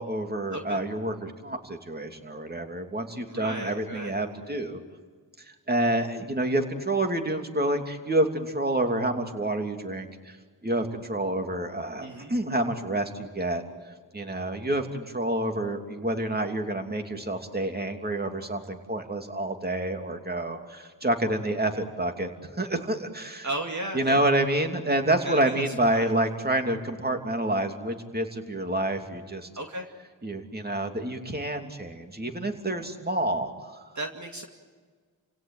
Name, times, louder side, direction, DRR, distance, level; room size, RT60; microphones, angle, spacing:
voice 1, 0.0-4.8 5.7-10.4 10.6-13.6 14.1-23.5 23.9-29.5 30.2-33.7, right 1 dB, 20° right, 5 dB, 2.9 m, -28 dB
voice 2, 3.3-4.2 12.0-12.3 23.4-24.2 25.2-26.1 29.6-29.9 33.9-34.5, right 1 dB, 45° right, 2 dB, 2.5 m, -35 dB
29.5 x 17.0 x 9.2 m, 1.5 s
cardioid pair, 60°, 42 cm